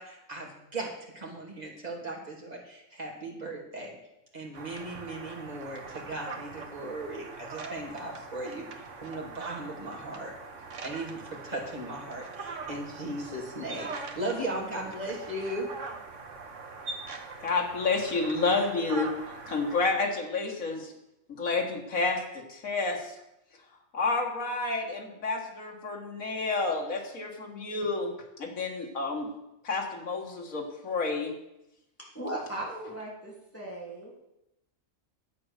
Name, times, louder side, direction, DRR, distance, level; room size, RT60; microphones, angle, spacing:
voice 1, 0.0-4.0 4.3-10.3 10.8-15.7, right 1 dB, 30° right, -2 dB, 2.6 m, -37 dB
sound 1, 4.5-19.8, right 4 dB, 65° right, 1.5 m, -42 dB
voice 2, 17.4-19.1 19.5-20.9 21.4-23.1 23.9-28.1 28.4-29.3 29.6-31.3, left 3 dB, 80° left, 1 dB, 2.1 m, -30 dB
voice 3, 32.1-34.1, right 1 dB, 10° left, -5 dB, 2.9 m, -37 dB
10.5 x 7.6 x 6.6 m, 0.89 s
omnidirectional pair, 1.4 m